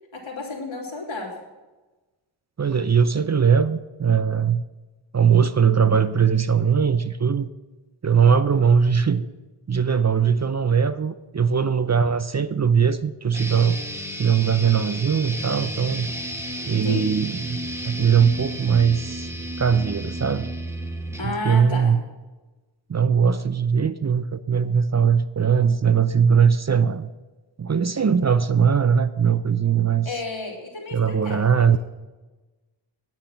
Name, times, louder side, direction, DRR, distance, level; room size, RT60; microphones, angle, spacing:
voice 1, 0.1-1.4 16.8-17.1 21.2-22.0 30.0-31.8, left 3 dB, 70° left, -1 dB, 3.0 m, -32 dB
voice 2, 2.6-4.6 5.1-7.5 8.0-9.3 9.7-13.8 14.2-16.1 16.7-17.6 17.8-19.3 19.6-20.5 21.4-22.0 22.9-27.1 27.6-30.1 30.9-31.8, right 7 dB, 35° right, 13 dB, 0.5 m, -20 dB
sound 1, 13.3-21.3, equal, 5° right, 1.3 m, -33 dB
9.7 x 9.1 x 5.8 m, 1.2 s
wide cardioid pair, 55°, 48 cm